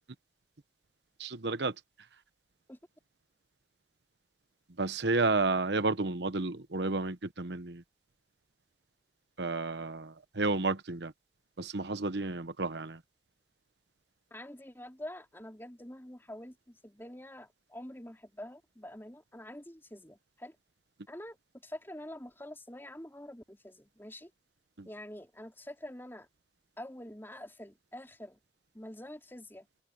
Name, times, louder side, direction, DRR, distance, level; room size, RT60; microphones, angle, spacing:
voice 1, 1.2-1.7 4.8-7.8 9.4-11.1 11.6-13.0 24.8-24.9, right 3 dB, 75° right, 1.1 m, -31 dB
voice 2, 14.3-20.6 21.1-21.4 21.6-24.3 24.9-26.3 26.8-28.4 28.7-29.7, left 1 dB, 15° left, 3.9 m, -46 dB
open air
head